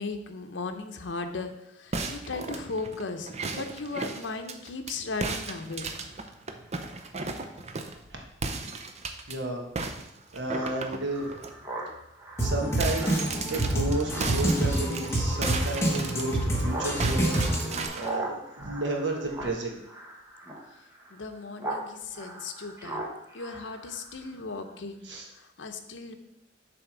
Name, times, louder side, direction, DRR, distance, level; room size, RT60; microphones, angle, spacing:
voice 1, 0.0-5.9 21.1-23.1 23.3-26.1, left 3 dB, 75° left, 6 dB, 0.7 m, -37 dB
sound 1, 1.9-4.9 5.2-8.0 8.4-9.4 9.8-11.5 11.9-12.1 12.4-16.6 17.0-18.2, right 3 dB, 35° right, 0.6 m, -35 dB
voice 2, 9.3-9.6 10.3-11.3 12.4-13.1 13.5-17.4 17.9-19.8 25.0-25.2, right 2 dB, 70° right, 1 dB, 1.4 m, -32 dB
Speech synthesizer, 10.5-21.9 22.1-24.4, right 2 dB, 15° right, 1.2 m, -40 dB
Drum kit, 12.4-17.9, right 1 dB, 15° left, 1.3 m, -27 dB
7.1 x 3.5 x 6.0 m, 0.85 s
head